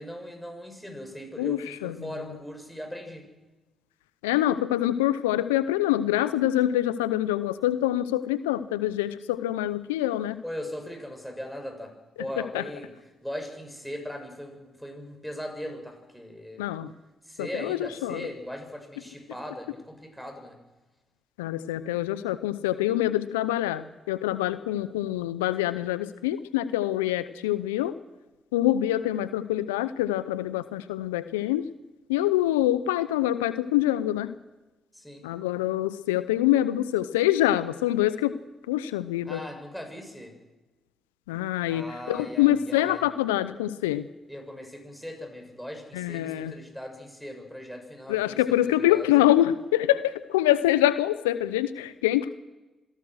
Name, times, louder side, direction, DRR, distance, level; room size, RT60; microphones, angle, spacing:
voice 1, 0.0-3.3 10.4-11.9 12.2-12.9 13.2-16.6 17.2-20.6 34.9-35.2 39.2-40.3 41.7-43.0 44.3-49.1, equal, ahead, 3 dB, 7.8 m, -39 dB
voice 2, 1.4-1.9 4.2-10.4 12.5-12.6 16.6-16.9 17.4-18.3 21.4-27.9 28.5-31.6 32.1-34.3 35.2-38.4 38.7-39.4 41.3-44.1 45.9-46.5 48.1-52.3, left 13 dB, 90° left, 15 dB, 0.6 m, -25 dB
26.5 x 17.5 x 6.5 m, 1.1 s
hypercardioid pair, 45°, 0 cm